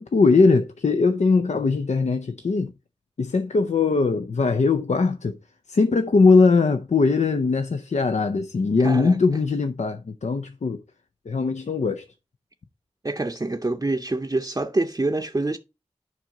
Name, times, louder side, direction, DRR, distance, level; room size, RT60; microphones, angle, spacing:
voice 1, 0.0-2.7 3.2-5.4 5.7-10.8 11.3-12.0, left 4 dB, 80° left, 0.5 m, -20 dB
voice 2, 8.8-9.2 13.0-15.6, right 2 dB, 30° right, 0.6 m, -26 dB
7.5 x 5.3 x 3.8 m
wide cardioid pair, 55°, 12 cm